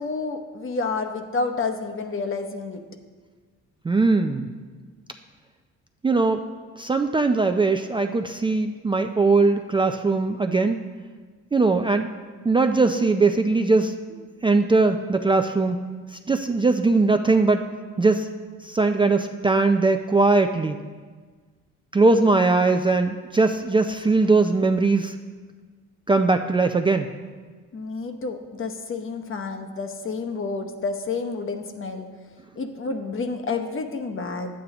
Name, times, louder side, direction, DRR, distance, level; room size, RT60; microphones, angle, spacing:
voice 1, 0.0-2.8 27.7-32.1 32.6-34.5, left 4 dB, 45° left, 6 dB, 1.0 m, -29 dB
voice 2, 3.8-4.5 6.0-6.4 6.8-10.8 11.5-12.1 12.4-15.8 16.1-17.7 18.0-18.3 18.6-20.8 21.9-25.2 26.1-27.1, right 3 dB, 15° right, 6 dB, 0.4 m, -20 dB
11.0 x 8.5 x 2.9 m, 1.5 s
cardioid pair, 90°, 30 cm